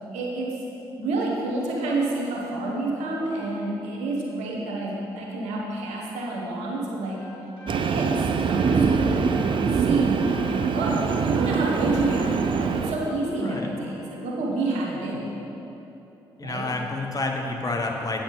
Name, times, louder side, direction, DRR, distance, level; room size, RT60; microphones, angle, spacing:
voice 1, 0.1-0.6 1.0-7.2 7.6-10.2 10.5-15.3 16.4-16.7, right 2 dB, 70° right, -2 dB, 1.3 m, -28 dB
sound 1, 7.2-15.0, left 1 dB, 80° left, 2.0 m, -45 dB
Train, 7.7-12.9, right 5 dB, 40° right, 0.5 m, -24 dB
voice 2, 16.4-18.2, left 2 dB, 30° left, 2 dB, 1.1 m, -29 dB
8.5 x 7.7 x 3.9 m, 3.0 s
figure-of-eight pair, 40°, 12 cm